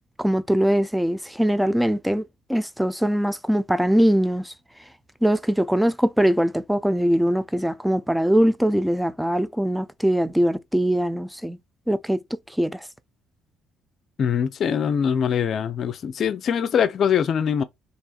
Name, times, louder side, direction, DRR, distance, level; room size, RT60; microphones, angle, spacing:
voice 1, 0.2-4.5 5.2-11.6 11.9-12.9, equal, 5° right, 0.4 m, -22 dB
voice 2, 14.2-17.6, left 7 dB, 55° left, 0.5 m, -23 dB
3.3 x 2.5 x 2.3 m
hypercardioid pair, 60°, 0 cm